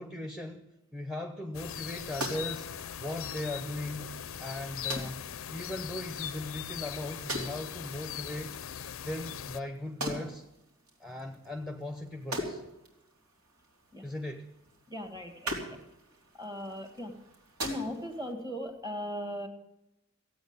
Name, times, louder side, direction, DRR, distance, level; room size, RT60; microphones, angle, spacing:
voice 1, 0.0-2.7 3.0-4.1 4.4-5.2 5.5-8.6 9.0-10.4 11.0-12.6 14.0-14.5, left 1 dB, ahead, 4 dB, 0.8 m, -38 dB
sound 1, 1.5-9.6, left 9 dB, 65° left, 0.5 m, -40 dB
sound 2, 1.7-18.3, right 1 dB, 85° right, 3.6 m, -43 dB
voice 2, 14.9-15.6 16.3-17.1 17.6-19.5, left 1 dB, 15° right, 6 dB, 1.7 m, -38 dB
16.0 x 8.7 x 9.6 m, 0.92 s
head